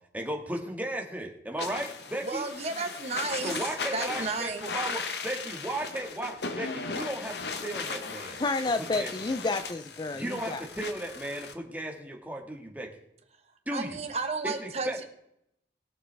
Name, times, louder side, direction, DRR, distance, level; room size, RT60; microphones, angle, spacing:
voice 1, 0.1-2.4 3.4-8.4 8.9-9.1 10.1-12.9 13.7-14.0 14.4-14.5 14.8-15.0, right 1 dB, 10° right, 0 dB, 1.7 m, -35 dB
sound 1, 1.6-11.5, left 4 dB, 70° left, 1.1 m, -37 dB
voice 2, 2.2-3.6 3.9-4.6 13.7-15.0, right 3 dB, 35° right, 6 dB, 1.2 m, -33 dB
voice 3, 8.4-10.7, left 3 dB, 25° left, 9 dB, 0.4 m, -30 dB
21.0 x 7.4 x 3.4 m, 0.76 s
head